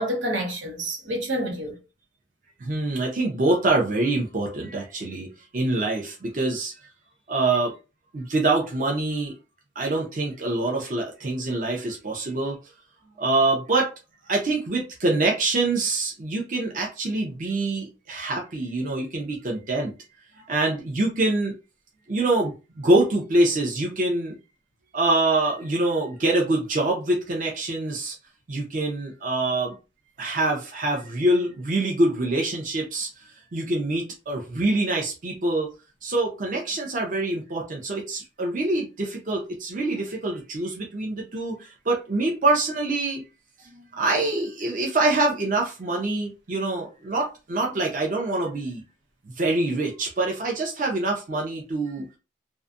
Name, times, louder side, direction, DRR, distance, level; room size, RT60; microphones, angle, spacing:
voice 1, 0.0-1.8 20.4-20.5 43.7-43.8, equal, 85° right, 1.0 m, -29 dB
voice 2, 2.6-5.3 5.5-6.7 7.3-7.7 8.1-9.3 9.8-12.6 13.2-13.9 14.3-19.9 20.5-21.5 22.1-24.4 24.9-28.2 28.5-29.7 30.2-33.2 33.5-35.7 36.0-43.2 44.0-48.8 49.4-52.2, right 2 dB, 40° right, 0.5 m, -25 dB
2.6 x 2.2 x 2.5 m
head